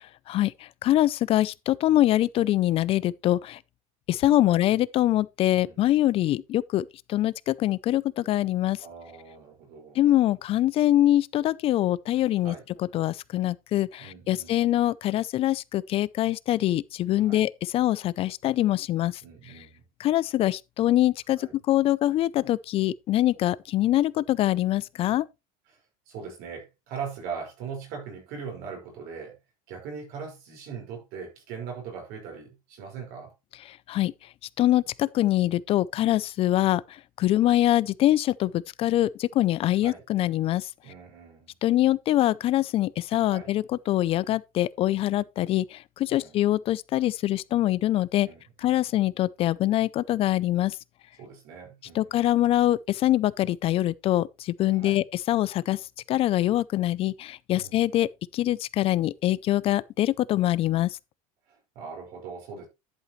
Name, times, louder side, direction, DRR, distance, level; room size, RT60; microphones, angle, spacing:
voice 1, 0.3-3.6 4.1-8.8 10.0-19.2 20.0-25.3 33.7-34.1 34.6-40.7 41.6-48.3 48.6-50.8 51.9-61.0, left 14 dB, 35° left, 0.4 m, -24 dB
voice 2, 8.8-10.0 12.4-12.6 14.0-14.6 17.2-17.5 19.2-19.8 21.4-21.5 25.7-25.8 26.1-29.4 29.7-33.3 39.8-40.0 40.8-41.5 43.2-43.5 46.1-46.4 48.2-48.8 51.2-52.2 54.7-55.0 57.5-57.8 61.5-62.7, right 6 dB, 55° right, 5.4 m, -40 dB
11.0 x 7.8 x 3.1 m
cardioid pair, 155°, 18 cm